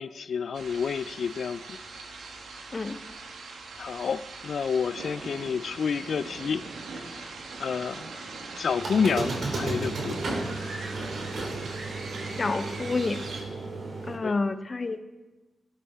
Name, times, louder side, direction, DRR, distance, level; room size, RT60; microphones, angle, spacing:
voice 1, 0.0-1.8 3.8-6.6 7.0-7.1 7.6-8.1 8.6-10.2 14.2-14.4, left 6 dB, 70° left, 15 dB, 0.4 m, -29 dB
sound 1, 0.5-13.4, right 3 dB, 85° right, 1.4 m, -42 dB
Squeak, 8.8-14.1, right 2 dB, 70° right, 2.7 m, -33 dB
voice 2, 12.4-13.4 14.1-15.0, left 3 dB, 40° left, 10 dB, 0.8 m, -29 dB
13.5 x 12.5 x 3.6 m, 1.2 s
cardioid pair, 65°, 0 cm